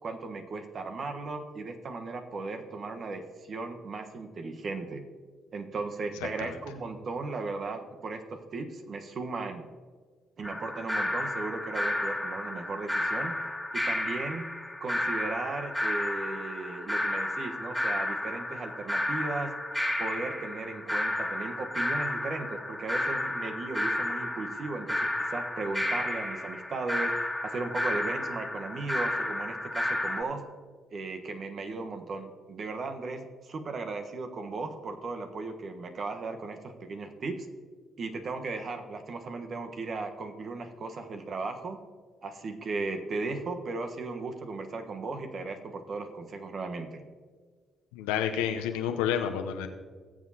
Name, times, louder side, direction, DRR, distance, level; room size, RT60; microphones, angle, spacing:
voice 1, 0.0-5.0 5.5-9.7 10.4-13.4 13.7-14.5 14.8-19.6 20.0-30.4 30.9-37.5 38.0-41.8 42.2-47.0, right 3 dB, 50° right, 5 dB, 1.2 m, -36 dB
sound 1, 10.4-30.2, left 1 dB, ahead, 2.1 m, -32 dB
voice 2, 47.9-49.7, left 9 dB, 85° left, 6 dB, 0.8 m, -29 dB
20.0 x 7.5 x 2.9 m, 1.5 s
hypercardioid pair, 50°, 0 cm